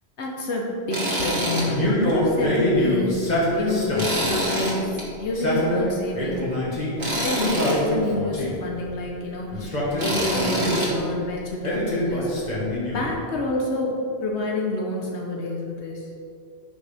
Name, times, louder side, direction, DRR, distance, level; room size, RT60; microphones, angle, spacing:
voice 1, 0.2-6.4 7.2-12.6 12.9-16.1, left 2 dB, 85° left, -1 dB, 1.2 m, -28 dB
Tools, 0.9-1.7 2.1-2.2 4.0-5.0 7.0-7.8 10.0-10.9, equal, 55° right, 2.0 m, -25 dB
Male speech man speaking, 1.7-4.2 5.2-6.9 7.4-8.6 9.5-11.0 11.6-13.1, left 1 dB, 40° left, 1.7 m, -25 dB
10.5 x 6.4 x 3.5 m, 2.5 s
omnidirectional pair, 1.1 m